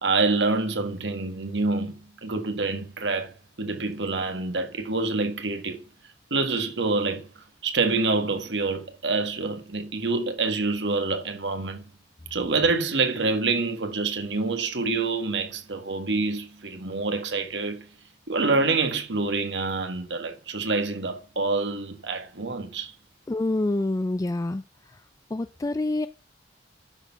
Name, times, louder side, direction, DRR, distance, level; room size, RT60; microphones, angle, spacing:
voice 1, 0.0-5.8 6.3-11.8 12.3-17.9 18.3-23.0, right 3 dB, 90° right, 1.7 m, -27 dB
voice 2, 23.3-24.6 25.3-26.1, left 2 dB, 20° left, 0.3 m, -26 dB
11.5 x 4.5 x 5.8 m
head